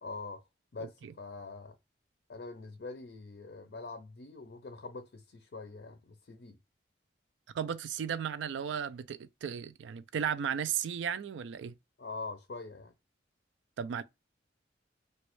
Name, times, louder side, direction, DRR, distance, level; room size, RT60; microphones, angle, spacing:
voice 1, 0.0-0.4 0.7-1.8 2.3-6.6 12.0-12.9, left 3 dB, 60° left, 0.4 m, -44 dB
voice 2, 0.8-1.1 7.5-11.7 13.8-14.0, right 8 dB, 80° right, 0.3 m, -35 dB
3.0 x 2.3 x 3.0 m
head